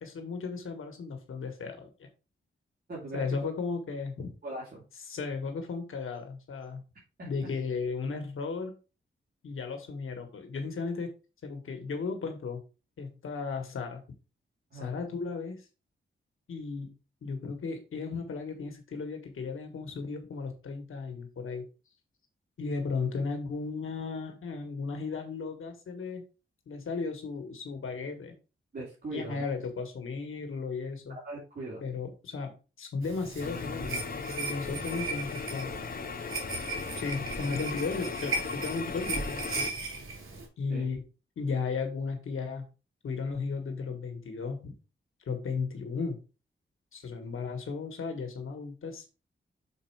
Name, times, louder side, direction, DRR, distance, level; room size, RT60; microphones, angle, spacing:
voice 1, 0.0-2.1 3.1-4.3 5.0-6.8 7.3-8.8 9.4-11.1 11.4-12.6 13.0-14.0 14.7-15.6 16.5-16.9 17.2-21.7 22.6-26.2 26.7-28.3 29.1-31.2 31.8-35.8 37.0-39.7 40.6-41.0 41.4-42.6 43.0-44.7 45.3-46.2 46.9-49.1, left 4 dB, 85° left, 5 dB, 1.4 m, -35 dB
voice 2, 2.9-3.2 4.4-4.8 7.2-7.3 14.7-14.9 28.7-29.4 31.1-31.8 40.7-40.9, right 2 dB, 50° right, -6 dB, 2.8 m, -39 dB
sound 1, 33.0-40.5, right 3 dB, 85° right, 3.2 m, -37 dB
sound 2, 33.4-39.7, left 5 dB, 45° left, 0.6 m, -38 dB
6.5 x 4.4 x 4.6 m, 0.32 s
wide cardioid pair, 110°, 21 cm